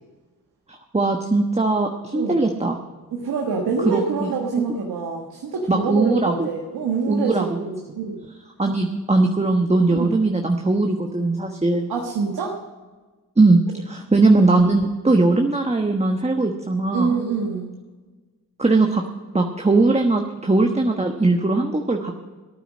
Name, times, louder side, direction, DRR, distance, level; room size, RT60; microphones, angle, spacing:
voice 1, 0.7-2.8 3.8-4.3 5.7-6.5 7.1-8.0 8.6-11.9 13.4-17.2 18.6-19.0 19.3-22.1, right 2 dB, 15° right, 3 dB, 1.2 m, -20 dB
voice 2, 3.1-8.2 9.9-10.1 11.9-12.6 16.9-17.7, right 4 dB, 80° right, 0 dB, 1.6 m, -26 dB
13.5 x 9.2 x 6.3 m, 1.3 s
supercardioid pair, 50°, 37 cm